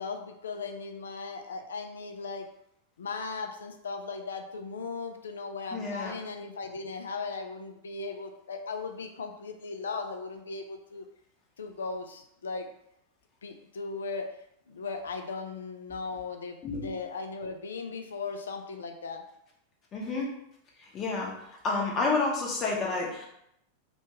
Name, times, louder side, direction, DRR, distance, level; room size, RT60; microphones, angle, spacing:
voice 1, 0.0-2.5 3.0-11.0 11.6-12.7 13.4-14.3 14.7-19.2, left 4 dB, 65° left, 5 dB, 0.3 m, -37 dB
voice 2, 5.7-6.1 16.6-16.9 19.9-20.3 20.8-21.3 21.6-23.3, left 3 dB, 30° left, -2 dB, 0.8 m, -30 dB
2.6 x 2.3 x 3.0 m, 0.77 s
figure-of-eight pair, 90°, 0 cm